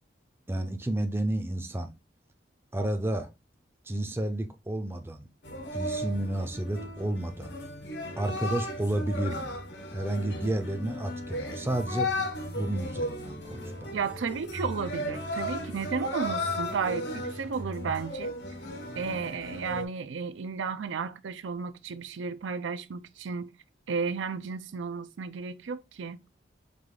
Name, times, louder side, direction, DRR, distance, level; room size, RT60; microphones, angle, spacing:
voice 1, 0.5-1.9 2.7-3.3 3.9-5.3 5.7-7.5 8.2-9.6 9.9-12.3 12.5-14.0, right 1 dB, 10° right, 0.5 m, -31 dB
sound 1, 5.4-19.8, left 1 dB, 70° left, 1.1 m, -35 dB
voice 2, 13.9-18.3 18.9-23.5 23.9-26.2, right 5 dB, 90° right, 0.5 m, -33 dB
4.9 x 2.4 x 3.7 m
head